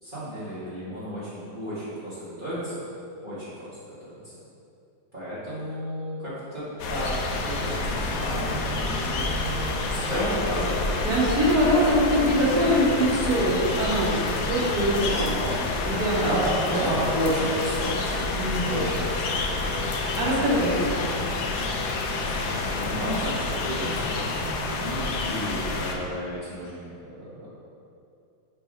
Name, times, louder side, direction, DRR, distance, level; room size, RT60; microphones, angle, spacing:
voice 1, 0.0-2.8 3.2-3.6 5.1-6.6 6.9-10.8 15.0-15.6 16.2-19.2 22.4-27.0, equal, 30° right, -13 dB, 1.7 m, -32 dB
sound 1, 6.8-26.0, left 3 dB, 65° left, 1.0 m, -28 dB
sound 2, 8.0-25.1, left 1 dB, 85° left, 2.0 m, -41 dB
voice 2, 11.0-15.3 15.8-16.3 16.7-16.9 18.4-18.8 20.2-21.3, equal, 65° right, -7 dB, 2.1 m, -23 dB
7.1 x 3.4 x 5.2 m, 2.5 s
omnidirectional pair, 1.8 m